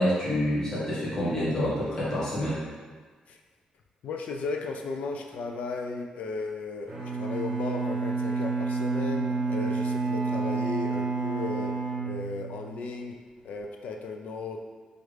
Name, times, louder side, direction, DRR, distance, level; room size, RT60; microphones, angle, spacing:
voice 1, 0.0-2.6, left 1 dB, 25° left, -9 dB, 1.1 m, -27 dB
voice 2, 4.0-11.7 12.0-13.2 13.4-14.6, left 4 dB, 75° left, 3 dB, 0.3 m, -35 dB
Bowed string instrument, 6.9-12.9, right 4 dB, 30° right, 0.7 m, -29 dB
3.1 x 2.4 x 3.2 m, 1.5 s
wide cardioid pair, 155°, 2 cm